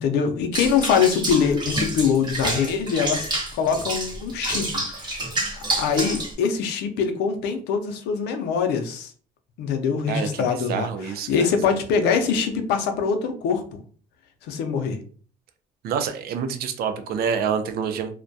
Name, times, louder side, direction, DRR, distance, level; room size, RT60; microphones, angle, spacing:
voice 1, 0.0-4.7 4.9-5.2 5.5-9.1 9.6-10.9 11.3-13.8 14.5-15.0, left 6 dB, 85° left, 7 dB, 0.5 m, -23 dB
Water / Bathtub (filling or washing), 0.5-6.3, right 2 dB, 25° right, 0.9 m, -28 dB
voice 2, 10.1-12.2 15.8-18.1, right 7 dB, 65° right, 8 dB, 0.4 m, -28 dB
2.2 x 2.1 x 2.6 m, 0.43 s
cardioid pair, 110°, 17 cm